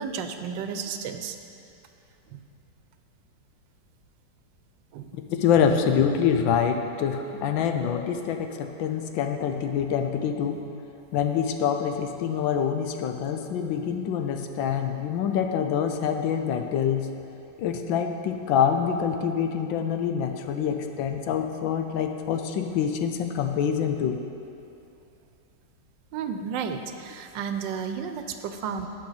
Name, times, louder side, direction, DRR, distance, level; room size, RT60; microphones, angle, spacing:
voice 1, 0.0-1.4 2.3-2.4 4.9-5.1 26.1-28.9, right 6 dB, 75° right, 7 dB, 1.3 m, -32 dB
voice 2, 5.1-10.6 11.1-17.1 17.6-24.2, left 7 dB, 90° left, 5 dB, 1.4 m, -26 dB
16.5 x 5.7 x 4.0 m, 2.7 s
omnidirectional pair, 2.1 m